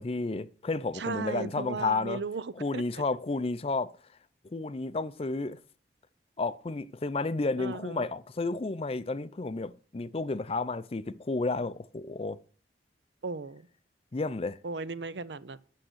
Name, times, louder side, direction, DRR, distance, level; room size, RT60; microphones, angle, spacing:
voice 1, 0.0-2.2 2.6-3.9 4.5-5.6 6.4-12.4 14.1-14.6, left 3 dB, 35° left, 0.5 m, -31 dB
voice 2, 0.9-2.5 2.7-2.8 7.6-8.1 13.2-13.7 14.6-15.6, right 4 dB, 75° right, 0.7 m, -36 dB
8.7 x 6.6 x 7.8 m
head